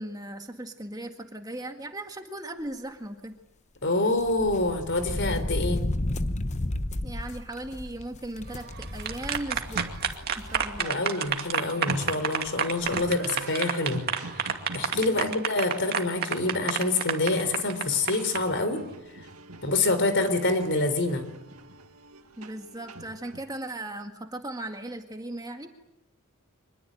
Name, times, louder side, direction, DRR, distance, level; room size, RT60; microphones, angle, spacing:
voice 1, 0.0-3.3 7.0-9.9 10.4-11.0 15.1-15.4 22.4-25.8, right 1 dB, 15° right, 5 dB, 1.9 m, -37 dB
voice 2, 3.8-5.8 10.8-18.8 19.6-21.2, left 2 dB, 55° left, 10 dB, 4.1 m, -27 dB
sound 1, 4.2-10.9 11.3-11.4 12.5-12.6 12.8-13.1, left 1 dB, 30° left, 1.0 m, -33 dB
sound 2, 8.6-18.4, right 7 dB, 45° right, 2.4 m, -29 dB
sound 3, 9.5-23.4, right 2 dB, 75° right, 2.3 m, -44 dB
25.5 x 21.5 x 9.1 m, 0.91 s
head